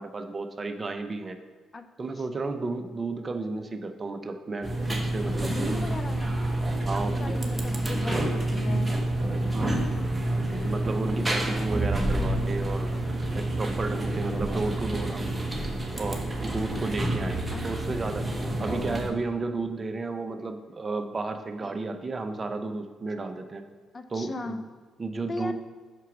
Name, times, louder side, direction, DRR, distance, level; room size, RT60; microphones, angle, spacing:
voice 1, 0.0-1.4 2.0-5.8 6.9-7.4 9.5-9.9 10.6-15.3 15.9-18.3 18.6-23.6 24.1-24.6 25.0-25.5, right 3 dB, 30° right, 8 dB, 0.6 m, -33 dB
sound 1, 4.6-19.1, right 1 dB, 10° right, 1.1 m, -28 dB
voice 2, 5.4-6.5 6.9-9.0 10.9-11.3 17.5-17.7 21.6-21.8 23.9-24.6 25.3-25.5, left 3 dB, 35° left, 9 dB, 0.5 m, -37 dB
5.9 x 4.5 x 6.1 m, 1.5 s
cardioid pair, 90°, 0 cm